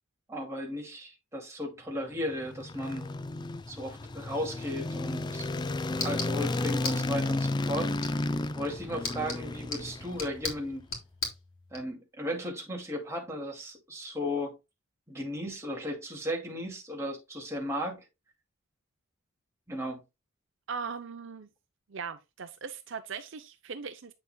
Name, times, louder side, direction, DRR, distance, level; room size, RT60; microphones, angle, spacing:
voice 1, 0.3-3.1 3.7-5.5 5.9-7.9 8.5-10.8 11.7-14.6 15.1-18.0 19.7-20.0, equal, 15° right, 2.3 m, -35 dB
sound 1, 2.1-10.5, left 2 dB, 20° left, 0.4 m, -33 dB
sound 2, 5.2-11.8, left 4 dB, 75° left, 3.1 m, -40 dB
voice 2, 20.7-21.5 21.9-24.1, right 5 dB, 60° right, 0.6 m, -39 dB
8.5 x 6.7 x 2.2 m
head